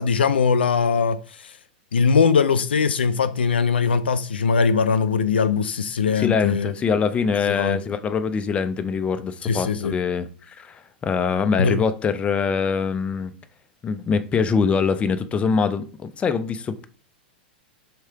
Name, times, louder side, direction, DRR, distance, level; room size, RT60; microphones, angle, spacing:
voice 1, 0.0-1.5 1.9-6.7 7.5-7.8 9.4-10.0 11.6-11.8, left 5 dB, 90° left, 0.4 m, -21 dB
voice 2, 6.2-13.3 13.8-16.9, left 5 dB, 20° left, 0.5 m, -23 dB
3.2 x 2.8 x 4.6 m
hypercardioid pair, 105°, 5 cm